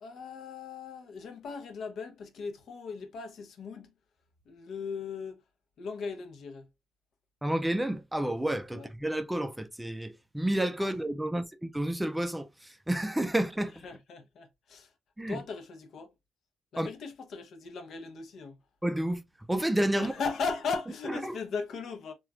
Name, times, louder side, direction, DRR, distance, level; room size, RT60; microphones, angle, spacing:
voice 1, 0.0-3.9 4.5-5.4 5.8-6.7 8.7-8.9 10.8-11.0 13.8-14.9 15.3-16.1 16.7-18.6 20.0-22.1, left 5 dB, 65° left, 0.7 m, -38 dB
voice 2, 7.4-12.5 12.9-13.7 15.2-15.4 16.8-16.9 18.8-19.2 19.5-20.1 21.2-21.3, right 1 dB, 10° right, 0.3 m, -30 dB
3.0 x 2.3 x 2.3 m
cardioid pair, 90°, 0 cm